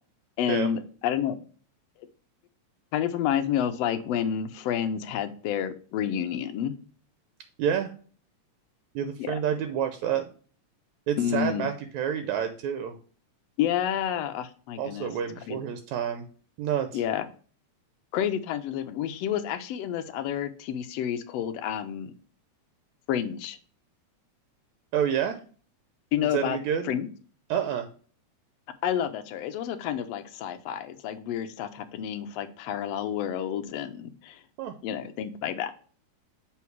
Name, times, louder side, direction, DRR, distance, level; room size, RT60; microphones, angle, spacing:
voice 1, 0.4-1.4 2.9-6.7 9.2-9.4 11.2-11.7 13.6-15.1 15.5-15.6 16.9-17.2 18.1-22.1 23.1-23.6 26.1-26.6 26.8-27.1 28.8-34.4 34.8-35.7, left 9 dB, 75° left, 9 dB, 1.5 m, -29 dB
voice 2, 7.6-7.9 9.0-10.3 11.1-13.0 14.8-16.2 16.6-17.0 24.9-25.4 26.2-27.0 27.5-27.9 34.6-34.7, right 8 dB, 80° right, 7 dB, 1.9 m, -28 dB
7.2 x 3.9 x 4.5 m, 0.42 s
omnidirectional pair, 3.5 m